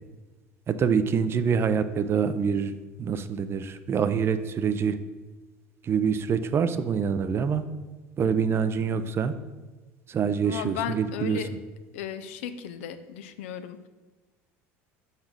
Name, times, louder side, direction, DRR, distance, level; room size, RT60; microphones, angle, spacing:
voice 1, 0.7-5.0 5.8-7.6 8.2-9.3 10.1-11.4, right 6 dB, 35° right, 11 dB, 0.5 m, -25 dB
voice 2, 10.4-11.5 11.9-13.9, left 9 dB, 85° left, 10 dB, 0.5 m, -35 dB
5.1 x 4.1 x 6.0 m, 1.3 s
supercardioid pair, 85°, 7 cm